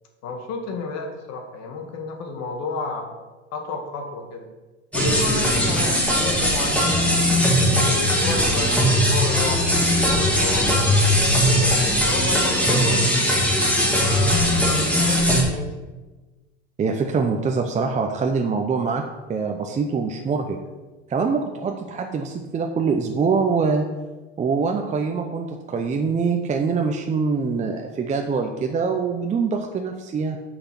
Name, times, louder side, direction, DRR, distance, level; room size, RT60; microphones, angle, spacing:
voice 1, 0.2-3.1 3.5-4.5 4.9-6.9 7.6-10.8 11.5-13.1 13.9-14.6 15.0-15.7, left 3 dB, 50° left, 3 dB, 1.9 m, -31 dB
sound 1, 4.9-15.4, equal, 5° left, 2.3 m, -19 dB
voice 2, 16.8-19.0 19.3-20.6 21.1-23.9 24.4-30.4, right 5 dB, 20° right, 4 dB, 0.7 m, -24 dB
6.3 x 6.1 x 6.0 m, 1.2 s
hypercardioid pair, 100°, 34 cm